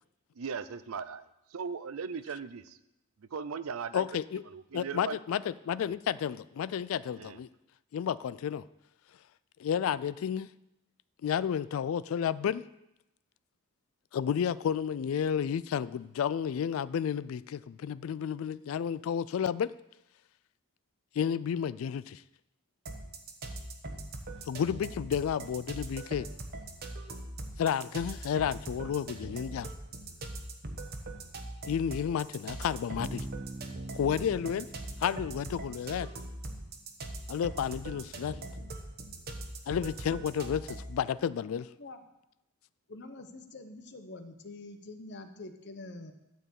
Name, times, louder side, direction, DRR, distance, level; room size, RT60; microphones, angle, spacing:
voice 1, 0.3-2.8 3.2-4.1 4.5-5.2 5.8-6.0 7.2-7.4, right 6 dB, 80° right, 14 dB, 0.6 m, -38 dB
voice 2, 3.9-4.4 4.7-7.5 7.9-8.6 9.6-10.5 11.2-12.6 14.1-19.7 21.2-22.2 24.5-26.3 27.6-29.7 31.7-33.3 33.9-34.7 35.0-36.1 37.3-38.4 39.7-41.7, left 8 dB, 70° left, 17 dB, 0.3 m, -31 dB
sound 1, 22.9-41.0, right 2 dB, 50° right, 1.1 m, -41 dB
Bass guitar, 33.0-36.7, right 2 dB, 20° right, 0.5 m, -45 dB
voice 3, 42.9-46.1, left 2 dB, 55° left, 8 dB, 0.9 m, -45 dB
12.0 x 4.6 x 8.1 m, 0.87 s
head